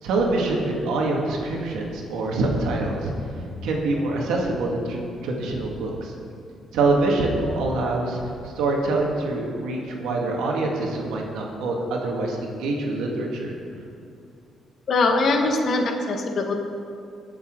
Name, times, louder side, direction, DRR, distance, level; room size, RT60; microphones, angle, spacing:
voice 1, 0.0-3.1 3.6-6.1 6.7-13.5, right 2 dB, 90° right, -1 dB, 1.9 m, -25 dB
voice 2, 14.9-16.6, left 3 dB, 55° left, 3 dB, 1.5 m, -22 dB
19.0 x 7.2 x 3.9 m, 2.4 s
cardioid pair, 90°, 0 cm